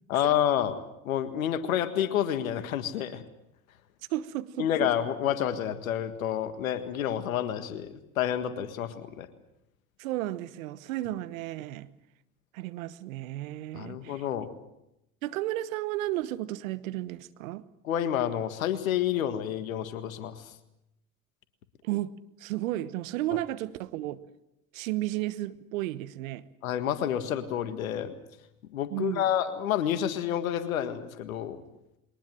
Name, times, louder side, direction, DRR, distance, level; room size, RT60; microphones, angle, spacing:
voice 1, 0.1-0.8 1.0-3.2 4.6-9.3 13.7-14.5 17.8-20.5 26.6-28.1 28.7-31.6, left 10 dB, 85° left, 10 dB, 1.8 m, -29 dB
voice 2, 4.1-4.9 10.0-11.9 12.5-14.2 15.2-17.6 21.8-22.1 22.4-24.2 24.7-26.4 28.9-29.3, right 15 dB, 80° right, 15 dB, 1.2 m, -33 dB
22.5 x 19.5 x 7.7 m, 0.87 s
hypercardioid pair, 70°, 40 cm